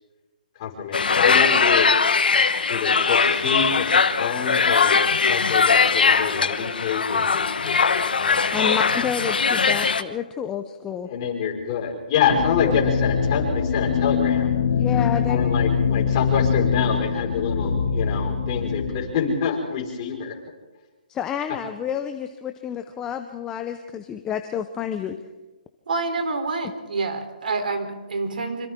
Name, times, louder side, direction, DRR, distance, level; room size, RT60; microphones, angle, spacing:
voice 1, 0.6-1.9 2.7-5.0 5.3-8.4 11.1-14.5 15.3-20.3, left 6 dB, 30° left, -1 dB, 5.3 m, -26 dB
sound 1, 0.9-10.0, left 5 dB, 80° left, 1.4 m, -20 dB
voice 2, 8.5-11.1 14.7-15.4 21.1-25.2, left 8 dB, 10° left, 7 dB, 0.8 m, -29 dB
sound 2, 12.3-19.0, left 6 dB, 45° left, 2.7 m, -23 dB
voice 3, 25.9-28.7, right 3 dB, 70° right, 6 dB, 3.8 m, -27 dB
26.5 x 26.0 x 3.8 m, 1.2 s
hypercardioid pair, 160°, 5 cm